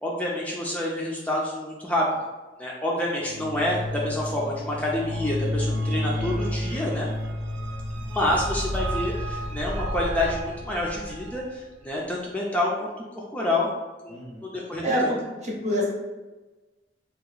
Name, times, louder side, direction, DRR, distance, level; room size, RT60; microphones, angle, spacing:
voice 1, 0.0-2.0 2.6-7.1 8.1-13.7 14.0-15.1, left 1 dB, 10° left, -4 dB, 0.4 m, -28 dB
sound 1, 3.2-11.5, equal, 70° right, 0.5 m, -30 dB
voice 2, 14.1-14.5 14.8-15.0 15.4-15.9, equal, 40° right, -2 dB, 0.8 m, -26 dB
2.8 x 2.3 x 3.9 m, 1.2 s
head